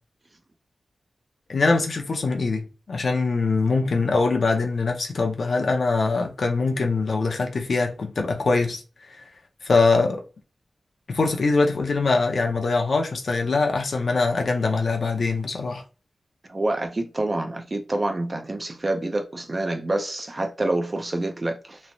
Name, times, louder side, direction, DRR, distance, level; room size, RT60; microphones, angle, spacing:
voice 1, 1.5-9.2 9.6-10.2 11.1-15.8, left 3 dB, 60° left, 0.6 m, -23 dB
voice 2, 16.5-21.8, right 2 dB, 30° right, 0.5 m, -27 dB
3.0 x 2.1 x 2.6 m
wide cardioid pair, 110°, 0 cm